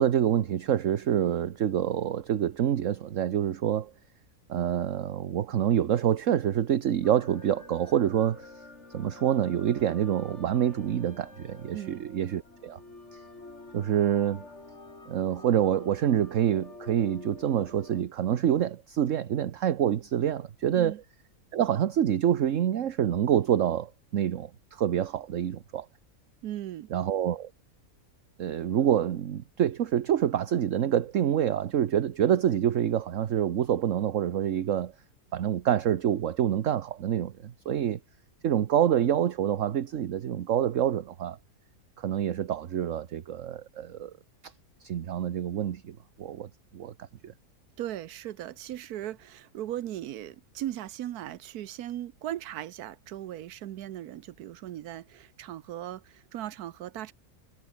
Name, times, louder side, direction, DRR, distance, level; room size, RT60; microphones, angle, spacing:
voice 1, 0.0-3.9 4.5-8.5 8.9-12.8 13.1-13.2 13.7-14.5 15.1-20.9 21.5-25.9 26.9-27.5 28.4-34.9 35.3-38.0 38.4-41.4 42.0-44.1 44.4-44.5 44.8-47.3, right 10 dB, 60° right, 1.2 m, -27 dB
Music Soft Calm Orchestral Ending, 7.0-18.0, left 3 dB, 50° left, 4.0 m, -48 dB
voice 2, 11.7-12.0 20.7-21.0 26.4-26.9 47.8-57.1, right 12 dB, 90° right, 1.3 m, -38 dB
omnidirectional pair, 1.6 m